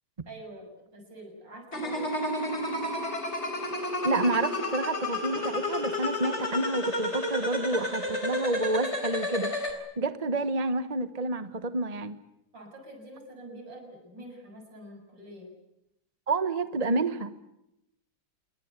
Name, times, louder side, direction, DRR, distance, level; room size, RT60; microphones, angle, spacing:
voice 1, 0.3-2.2 12.5-15.5, right 1 dB, 65° right, 3 dB, 7.7 m, -46 dB
sound 1, 1.7-9.7, left 1 dB, 35° left, 4.2 m, -31 dB
voice 2, 4.0-9.5 10.0-12.2 16.3-17.3, right 2 dB, 25° right, 12 dB, 1.0 m, -29 dB
27.5 x 22.5 x 8.2 m, 0.85 s
omnidirectional pair, 2.1 m